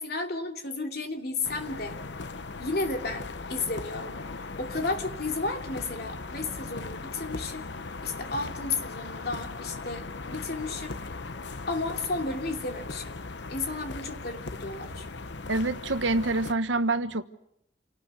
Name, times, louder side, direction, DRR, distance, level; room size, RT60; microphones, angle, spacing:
voice 1, 0.0-2.0 2.6-4.1 4.6-7.6 8.0-10.9 11.7-13.2 13.5-15.1, left 3 dB, 55° left, 3 dB, 2.9 m, -33 dB
sound 1, 1.4-16.5, left 3 dB, 75° left, 0.9 m, -38 dB
voice 2, 15.5-17.2, right 2 dB, 90° right, 11 dB, 1.3 m, -26 dB
28.0 x 18.5 x 8.3 m, 0.79 s
head